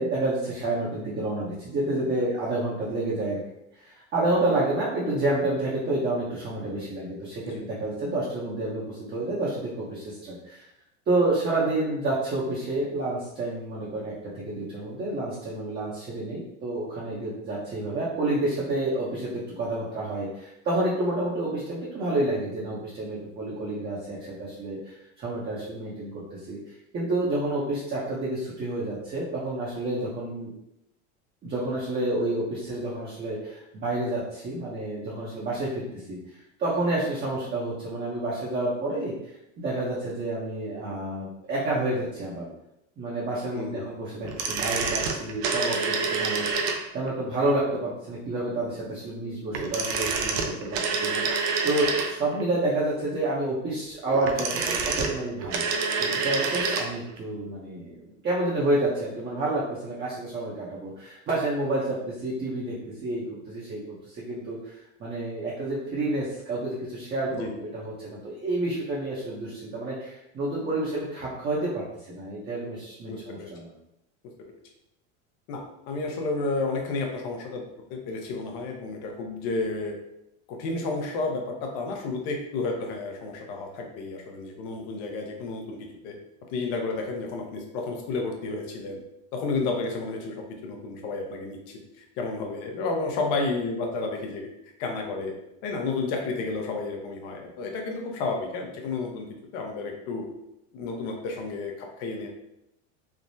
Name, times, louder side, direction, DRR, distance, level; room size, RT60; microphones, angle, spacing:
voice 1, 0.0-3.4 3.8-10.6 11.1-26.6 26.9-30.5 31.4-39.3 39.6-42.5 43.0-55.7 56.0-73.7, right 2 dB, 25° right, -6 dB, 0.7 m, -29 dB
voice 2, 43.5-43.9 67.3-67.5 73.1-73.5 75.5-77.6 77.9-80.0 80.5-86.2 86.5-89.0 89.3-95.3 95.6-100.3 100.7-102.3, left 3 dB, 60° left, 2 dB, 0.8 m, -31 dB
sound 1, 44.2-47.1 49.5-52.4 54.1-56.9 57.2-57.3, right 4 dB, 65° right, 0.6 m, -27 dB
3.4 x 2.0 x 2.6 m, 0.85 s
supercardioid pair, 115°, 37 cm